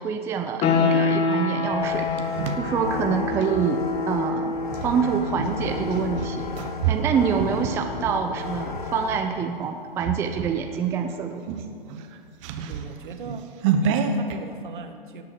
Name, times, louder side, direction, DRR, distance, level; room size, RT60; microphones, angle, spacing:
voice 1, 0.0-2.3 2.6-6.4 6.9-11.6, right 6 dB, 10° right, 5 dB, 0.5 m, -26 dB
sound 1, 0.6-11.1, left 4 dB, 20° left, 1.3 m, -29 dB
sound 2, 1.7-3.7 4.7-8.9 9.4-9.6 10.0-10.7 11.0-11.1 11.4-14.4, right 6 dB, 35° right, 1.1 m, -29 dB
sound 3, 1.8-9.2, left 5 dB, 55° left, 1.9 m, -35 dB
voice 2, 12.6-13.5 13.8-15.2, right 5 dB, 55° right, 8 dB, 1.5 m, -38 dB
17.5 x 8.4 x 7.6 m, 2.3 s
figure-of-eight pair, 115°, 29 cm